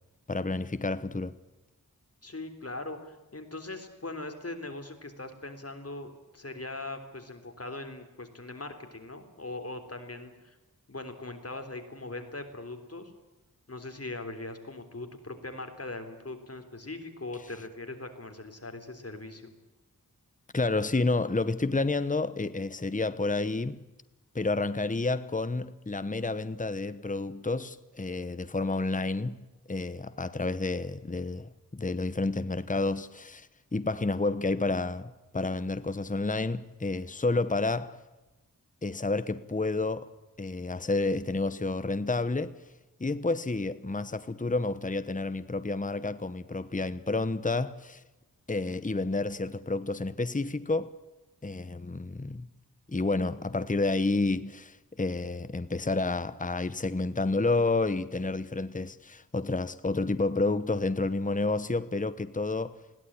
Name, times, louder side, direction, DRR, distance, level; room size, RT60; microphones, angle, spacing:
voice 1, 0.3-1.3 20.5-23.8 24.3-29.4 29.7-38.0 38.8-40.1 40.4-42.5 43.0-48.0 48.5-50.9 51.4-52.5 52.9-62.8, left 3 dB, 20° left, 1.0 m, -30 dB
voice 2, 2.2-10.6 10.9-13.1 13.7-19.5, left 2 dB, 40° left, 3.7 m, -40 dB
21.0 x 17.0 x 10.0 m
wide cardioid pair, 60°, 35 cm